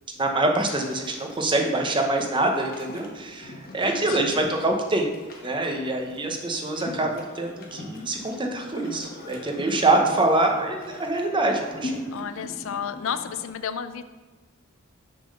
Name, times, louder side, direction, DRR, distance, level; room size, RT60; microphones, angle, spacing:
voice 1, 0.1-5.1 5.4-12.0, right 2 dB, 20° right, 3 dB, 0.8 m, -25 dB
sound 1, 0.6-13.5, left 1 dB, 45° left, 1.1 m, -41 dB
voice 2, 3.7-4.6 12.1-14.0, left 7 dB, 60° left, 11 dB, 0.4 m, -33 dB
6.7 x 3.8 x 6.3 m, 1.3 s
head